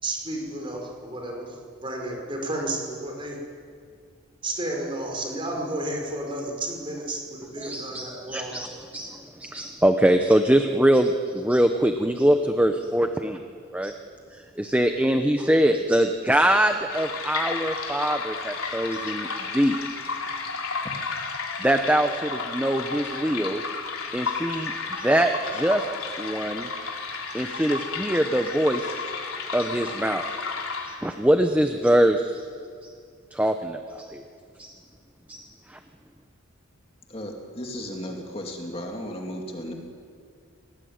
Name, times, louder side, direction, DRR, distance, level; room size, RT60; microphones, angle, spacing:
voice 1, 0.0-1.5 1.8-3.4 4.4-8.5, right 1 dB, 25° right, 1 dB, 5.2 m, -32 dB
voice 2, 7.6-13.4 13.7-13.9 14.3-19.8 21.6-23.6 24.1-25.8 26.2-26.7 27.3-28.9 29.5-30.2 30.8-32.4 32.8-32.9 33.3-34.2 34.6-34.7 35.3-35.8, right 1 dB, 5° right, 6 dB, 0.9 m, -23 dB
sound 1, 16.9-31.2, left 4 dB, 75° left, 3.2 m, -32 dB
voice 3, 37.1-39.7, equal, 25° left, 1 dB, 2.7 m, -35 dB
27.0 x 19.0 x 9.5 m, 2.2 s
head